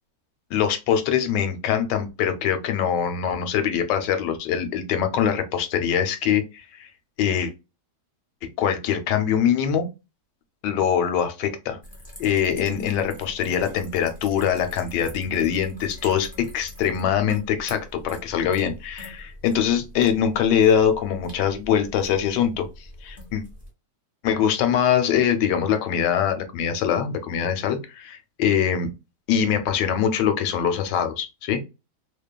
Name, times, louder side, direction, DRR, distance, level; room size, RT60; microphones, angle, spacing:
voice 1, 0.5-6.9 7.2-7.5 8.4-9.9 10.6-11.8 12.2-22.7 23.0-23.4 24.2-28.9 29.3-31.6, left 8 dB, 80° left, 8 dB, 1.2 m, -23 dB
sound 1, 11.8-23.7, left 1 dB, 5° left, 0.7 m, -43 dB
2.8 x 2.1 x 2.2 m, 0.26 s
omnidirectional pair, 1.8 m